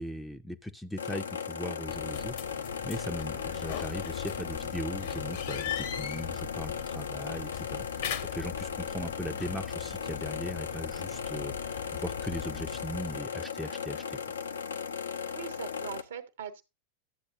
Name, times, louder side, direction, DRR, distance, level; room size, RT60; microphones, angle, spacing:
voice 1, 0.0-2.3 2.8-14.2, left 1 dB, 5° left, 0.6 m, -39 dB
sound 1, 1.0-16.0, left 6 dB, 70° left, 0.6 m, -37 dB
sound 2, 1.9-13.2, left 9 dB, 55° left, 1.0 m, -40 dB
voice 2, 15.3-16.6, right 8 dB, 65° right, 1.0 m, -41 dB
11.5 x 7.9 x 2.6 m
figure-of-eight pair, 90°, 0 cm